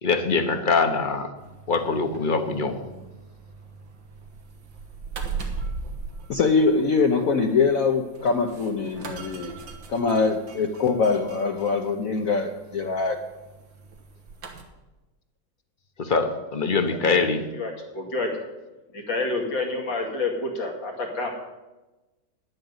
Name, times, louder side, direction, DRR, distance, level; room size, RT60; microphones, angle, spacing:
voice 1, 0.0-1.3 1.7-2.8 16.0-17.4, left 4 dB, 35° left, 7 dB, 0.8 m, -23 dB
sound 1, 1.4-14.6, right 4 dB, 85° right, 2.0 m, -40 dB
voice 2, 6.3-9.5 9.9-13.2, left 4 dB, 60° left, 3 dB, 1.1 m, -23 dB
voice 3, 17.5-18.3 18.9-21.3, left 3 dB, 85° left, 0 dB, 2.9 m, -28 dB
10.5 x 7.8 x 8.0 m, 1.1 s
omnidirectional pair, 2.0 m